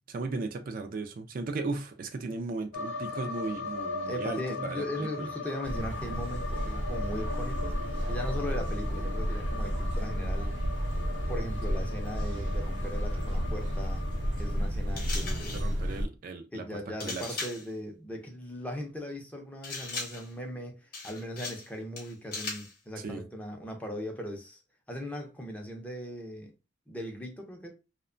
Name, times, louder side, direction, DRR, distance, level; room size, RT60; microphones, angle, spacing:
voice 1, 0.1-5.3 15.5-17.2 23.0-23.2, right 3 dB, 50° right, 0.3 m, -36 dB
sound 1, 2.7-14.7, left 3 dB, 75° left, 0.4 m, -40 dB
voice 2, 4.1-10.5 11.3-14.1 14.4-15.6 16.5-24.6 24.9-26.5 26.9-27.7, equal, 10° left, 0.5 m, -39 dB
sound 2, 5.6-16.1, equal, 85° right, 0.7 m, -32 dB
sound 3, 15.0-15.7 17.0-17.7 19.6-20.3 20.9-21.7 22.0-22.7, left 3 dB, 50° left, 0.7 m, -38 dB
2.8 x 2.1 x 2.4 m
head